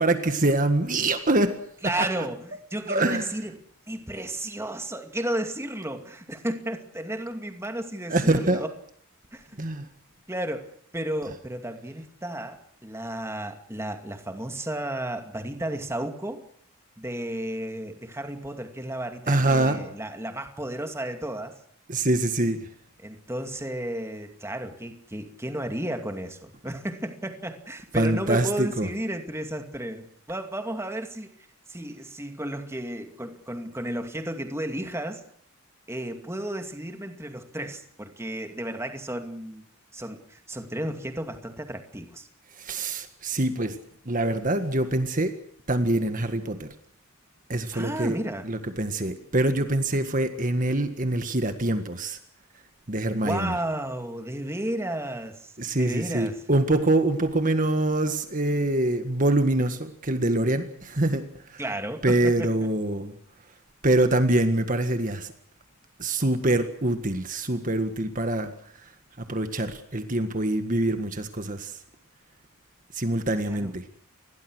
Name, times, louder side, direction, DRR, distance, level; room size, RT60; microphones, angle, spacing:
voice 1, 0.0-1.5 2.0-2.3 2.9-3.3 8.1-8.6 9.6-9.9 19.3-19.8 21.9-22.7 27.9-28.9 42.6-43.8 44.1-45.3 45.7-46.7 47.5-48.2 48.4-52.2 52.9-53.5 55.6-61.6 62.0-63.1 63.8-65.3 66.0-68.5 68.8-68.9 69.2-71.8 72.9-73.8, right 1 dB, 35° right, 8 dB, 1.7 m, -25 dB
voice 2, 1.8-3.6 3.9-8.7 9.3-9.4 10.3-16.4 17.0-21.5 23.0-31.3 31.7-35.2 35.9-39.6 39.9-42.3 47.7-48.5 53.2-56.4 61.6-62.7 73.4-73.7, right 1 dB, 10° right, 6 dB, 2.4 m, -33 dB
29.0 x 21.5 x 6.4 m, 0.64 s
head